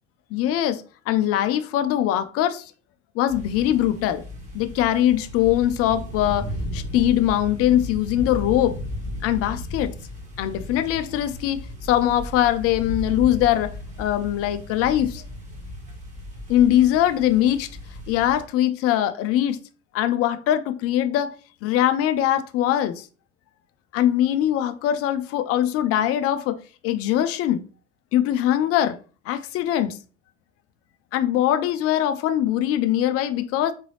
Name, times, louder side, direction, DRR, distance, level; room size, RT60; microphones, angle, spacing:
voice 1, 0.3-2.7 3.1-4.2 4.5-8.8 9.2-9.9 10.4-15.2 16.5-17.7 18.1-19.6 19.9-21.3 21.6-23.1 23.9-26.6 26.8-27.6 28.1-29.0 29.3-30.0 31.1-33.7, left 12 dB, 40° left, 0.5 m, -22 dB
sound 1, 3.3-18.4, left 1 dB, 20° right, 1.9 m, -35 dB
4.0 x 3.7 x 3.2 m
figure-of-eight pair, 65°, 35 cm